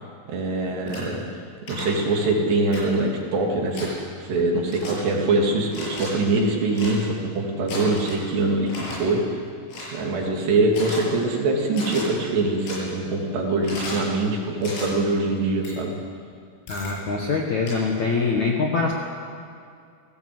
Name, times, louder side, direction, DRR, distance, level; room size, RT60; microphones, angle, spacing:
voice 1, 0.3-1.2 1.7-3.9 4.2-9.4 9.9-15.9, right 2 dB, 60° right, 0 dB, 4.8 m, -23 dB
sound 1, 0.9-1.0 1.7-1.8 2.7-2.8 3.7-3.9 4.7-4.9 5.7-6.1 6.7-6.9 7.7-8.2 8.7-9.0 9.7-9.9 10.7-11.0 11.7-12.0 12.7-12.8 13.6-14.0 14.6-14.8 15.6-15.7 16.7-16.9 17.7-17.8, left 2 dB, 80° left, 10.0 m, -35 dB
voice 2, 16.7-18.9, left 4 dB, 55° left, 0 dB, 2.1 m, -24 dB
29.5 x 18.0 x 7.9 m, 2.3 s
omnidirectional pair, 5.7 m